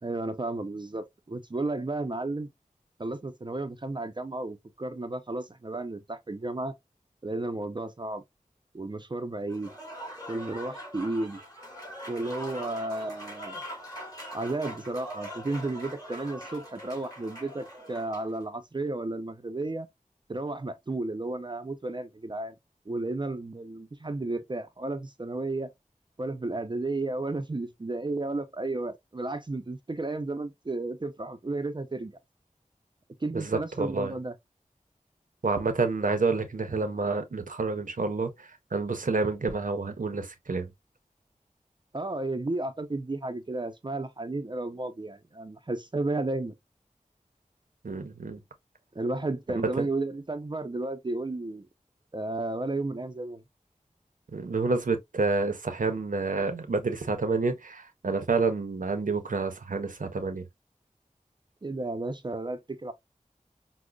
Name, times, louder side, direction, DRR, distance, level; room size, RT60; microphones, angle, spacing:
voice 1, 0.0-2.5 3.0-6.7 7.2-8.2 8.7-9.7 10.3-11.4 12.1-13.6 14.3-19.9 20.3-22.5 22.9-25.7 26.2-32.2 33.2-34.3 41.9-46.5 48.9-51.7 52.1-53.4 61.6-62.9, right 2 dB, 35° right, 0.4 m, -33 dB
Applause / Crowd, 9.5-18.3, equal, 25° left, 2.0 m, -42 dB
voice 2, 33.3-34.1 35.4-40.7 47.8-48.4 49.5-49.8 54.3-60.5, right 3 dB, 80° right, 0.6 m, -29 dB
4.9 x 2.0 x 2.2 m
wide cardioid pair, 45°, 14 cm